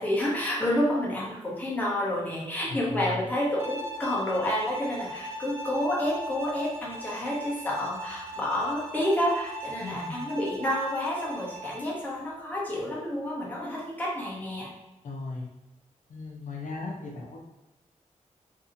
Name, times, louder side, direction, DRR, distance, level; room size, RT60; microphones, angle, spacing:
voice 1, 0.0-14.7, left 1 dB, 15° left, -5 dB, 0.7 m, -29 dB
voice 2, 2.7-3.3 9.8-10.2 15.0-15.5 16.1-17.4, left 3 dB, 80° left, -1 dB, 0.6 m, -37 dB
Bowed string instrument, 3.6-12.0, right 1 dB, 20° right, 0.4 m, -39 dB
2.6 x 2.6 x 2.5 m, 1.0 s
wide cardioid pair, 160°, 13 cm